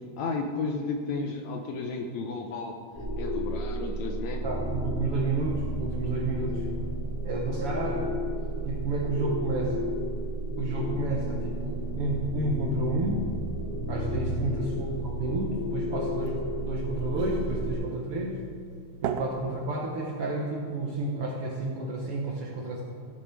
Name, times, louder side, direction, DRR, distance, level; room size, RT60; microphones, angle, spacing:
voice 1, 0.2-2.8 3.2-4.4 14.4-14.8, left 4 dB, 75° left, 4 dB, 1.8 m, -33 dB
sound 1, 2.9-17.8, right 1 dB, 25° left, 1.6 m, -32 dB
voice 2, 4.4-6.7 7.2-8.2 8.6-9.9 10.6-13.2 13.9-18.4 19.0-22.8, right 2 dB, 60° right, -1 dB, 1.6 m, -31 dB
sound 2, 14.7-20.5, right 8 dB, 80° right, 1.8 m, -40 dB
16.0 x 6.9 x 4.5 m, 2.3 s
omnidirectional pair, 3.7 m